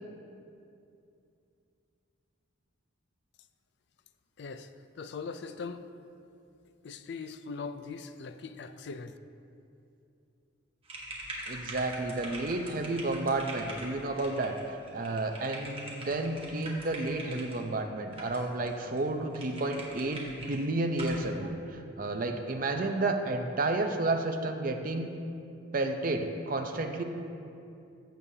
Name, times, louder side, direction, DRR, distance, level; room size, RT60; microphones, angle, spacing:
voice 1, 4.4-5.9 6.8-9.2, left 4 dB, 55° left, 11 dB, 0.4 m, -41 dB
sound 1, 10.8-17.6 18.1-18.7 19.0-19.1 19.3-20.6 20.9-21.2, right 1 dB, 25° right, 1.3 m, -43 dB
voice 2, 11.5-25.1 25.7-27.0, right 2 dB, 40° right, 5 dB, 0.6 m, -31 dB
15.0 x 7.0 x 2.8 m, 2.6 s
head